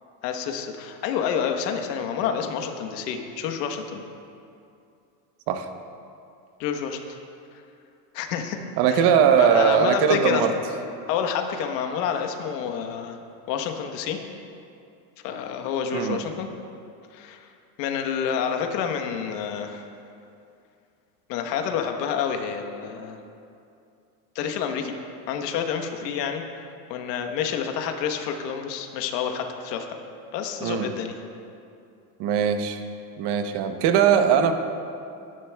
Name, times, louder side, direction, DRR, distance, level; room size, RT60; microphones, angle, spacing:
voice 1, 0.2-4.0 6.6-7.0 8.1-8.6 8.9-9.1 9.4-10.6 11.1-13.2 13.5-14.2 15.2-16.5 17.1-17.5 17.8-19.8 21.3-23.2 24.3-24.9 25.3-30.0 30.3-31.1, left 7 dB, 85° left, 5 dB, 1.2 m, -28 dB
voice 2, 8.8-10.5 15.9-16.2 30.6-30.9 32.2-32.8 33.2-34.5, right 7 dB, 55° right, 7 dB, 1.0 m, -20 dB
19.0 x 11.0 x 2.3 m, 2.5 s
supercardioid pair, 135°, 48 cm